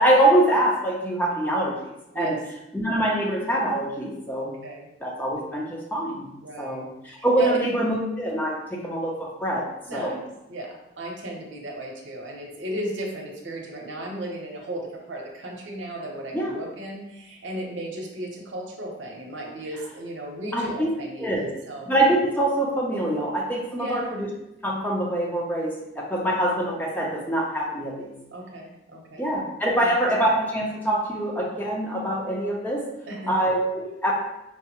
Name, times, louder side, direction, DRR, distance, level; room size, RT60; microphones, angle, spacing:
voice 1, 0.0-1.7 2.1-2.4 2.7-4.5 5.0-6.3 6.6-9.7 9.9-10.2 16.3-16.5 20.5-20.9 21.2-21.5 21.9-24.3 24.6-28.1 29.2-32.8 33.3-34.1, right 1 dB, 10° left, -3 dB, 0.5 m, -24 dB
voice 2, 6.4-6.8 7.2-7.6 9.9-10.2 10.5-21.9 23.8-24.1 28.3-29.3 29.8-29.9 33.1-33.4, right 1 dB, 75° right, -1 dB, 0.7 m, -35 dB
4.5 x 2.0 x 2.8 m, 0.89 s
head